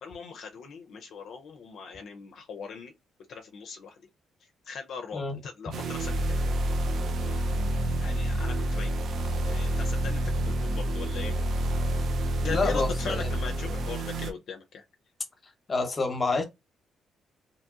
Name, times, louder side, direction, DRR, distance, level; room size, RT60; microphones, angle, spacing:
voice 1, 0.0-2.9 3.3-4.1 4.7-6.4 8.0-8.9 9.5-11.3 12.4-14.8, left 6 dB, 70° left, 0.4 m, -39 dB
sound 1, 5.7-14.3, right 1 dB, 65° right, 0.4 m, -28 dB
voice 2, 12.4-13.3 15.7-16.4, left 3 dB, 30° left, 0.8 m, -28 dB
2.8 x 2.6 x 2.3 m
cardioid pair, 90°, 0 cm